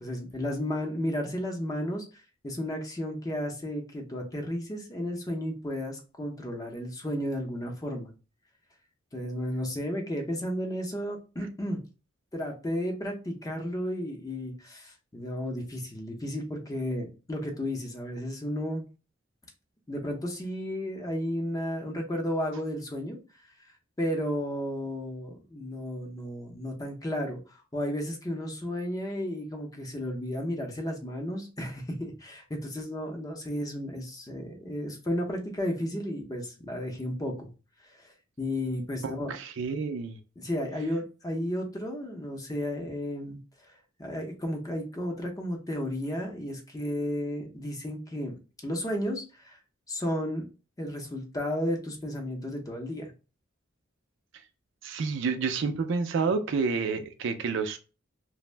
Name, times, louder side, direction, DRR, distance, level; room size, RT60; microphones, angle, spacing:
voice 1, 0.0-2.0 2.4-8.1 9.1-11.8 12.3-18.8 19.9-23.2 24.0-37.5 38.4-39.3 40.4-43.4 44.0-48.3 48.6-49.6 49.9-50.4 50.8-53.1, equal, 20° left, 0.6 m, -33 dB
voice 2, 39.0-40.2 54.8-57.8, right 5 dB, 70° right, 0.4 m, -29 dB
2.5 x 2.0 x 3.1 m
head